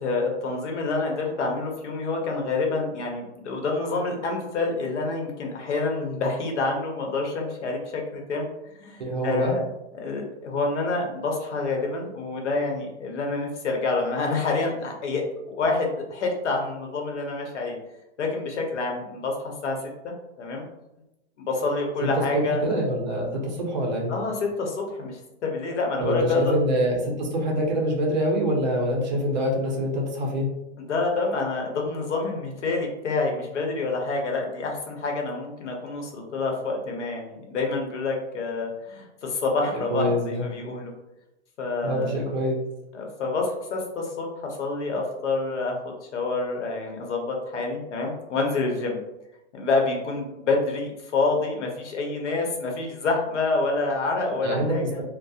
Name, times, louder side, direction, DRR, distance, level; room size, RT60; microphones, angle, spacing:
voice 1, 0.0-8.5 8.8-9.6 9.9-17.8 18.2-19.8 20.0-20.6 21.4-22.6 24.1-26.5 30.8-40.9 41.6-42.1 42.9-49.0 49.5-55.0, left 3 dB, 80° left, 1 dB, 0.8 m, -27 dB
voice 2, 9.0-9.6 22.0-24.1 26.0-30.5 39.9-40.4 41.8-42.6 54.4-54.8, equal, 40° right, 0 dB, 0.5 m, -25 dB
2.7 x 2.0 x 2.3 m, 0.92 s
hypercardioid pair, 175°, 35 cm